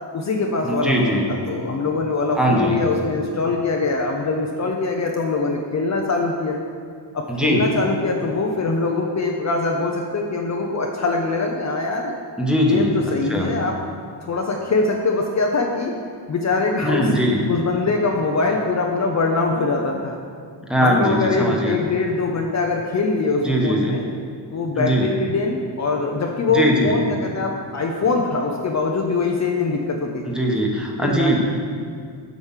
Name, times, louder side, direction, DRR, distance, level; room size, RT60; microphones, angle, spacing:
voice 1, 0.1-1.2 1.5-6.6 7.1-12.1 12.6-13.8 14.2-16.0 16.3-17.1 17.5-20.2 20.8-24.0 24.5-30.3 31.0-31.4, left 3 dB, 40° left, 1 dB, 0.8 m, -23 dB
voice 2, 0.6-1.3 2.3-2.8 7.3-7.7 12.4-12.9 13.3-13.5 16.8-17.4 20.7-21.8 23.4-24.0 24.8-25.1 26.5-27.0 30.3-31.4, equal, ahead, -2 dB, 1.2 m, -20 dB
8.1 x 5.2 x 7.4 m, 2.1 s
wide cardioid pair, 135°, 44 cm